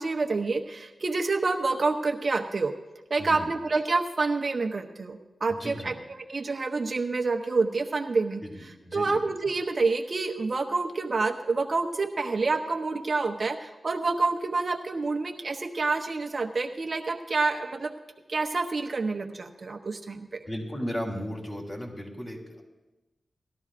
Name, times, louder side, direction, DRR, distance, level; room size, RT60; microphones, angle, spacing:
voice 1, 0.0-2.7 3.1-8.4 8.9-17.9 18.3-20.4, right 3 dB, 55° right, 4 dB, 0.8 m, -28 dB
voice 2, 5.5-5.9 8.4-9.2 20.5-22.6, equal, 30° left, 0 dB, 3.5 m, -35 dB
19.0 x 12.5 x 2.5 m, 1.1 s
cardioid pair, 50°, 0 cm